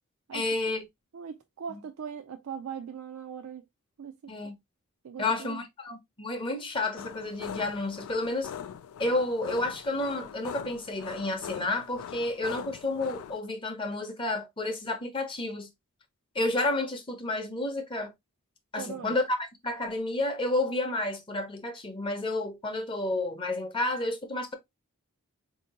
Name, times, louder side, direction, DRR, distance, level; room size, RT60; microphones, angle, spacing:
voice 1, 0.3-0.8 1.7-1.8 4.3-4.6 5.2-8.5 9.0-15.7 16.3-18.1 18.7-24.5, left 2 dB, 25° left, 0.6 m, -31 dB
voice 2, 1.1-3.6 4.0-4.2 5.0-5.6 18.8-19.2, right 7 dB, 75° right, 0.4 m, -40 dB
sound 1, 6.9-13.4, left 8 dB, 80° left, 0.3 m, -42 dB
4.3 x 2.7 x 2.7 m
head